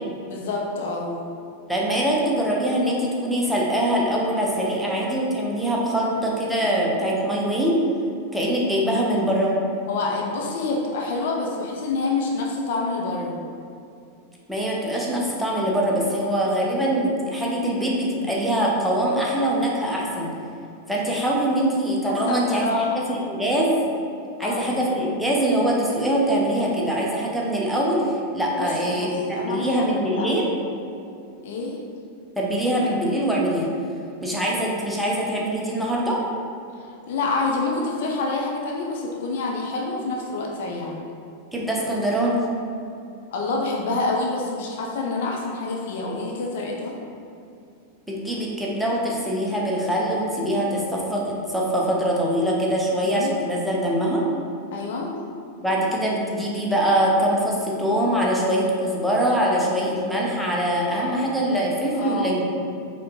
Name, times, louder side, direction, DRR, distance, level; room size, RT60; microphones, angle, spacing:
voice 1, 0.3-1.2 9.9-13.4 22.1-23.0 24.4-24.7 28.6-29.8 30.2-30.4 31.4-31.8 37.1-41.0 43.3-47.0 52.9-53.3 54.7-55.1 62.0-62.4, left 3 dB, 55° left, -1 dB, 0.5 m, -27 dB
voice 2, 1.7-7.8 8.3-9.5 14.5-20.3 20.9-23.8 24.4-30.5 32.4-33.7 34.2-36.2 41.5-42.4 48.1-54.3 55.6-62.5, right 1 dB, ahead, -5 dB, 0.8 m, -23 dB
4.8 x 3.5 x 3.0 m, 2.6 s
figure-of-eight pair, 90°, 0 cm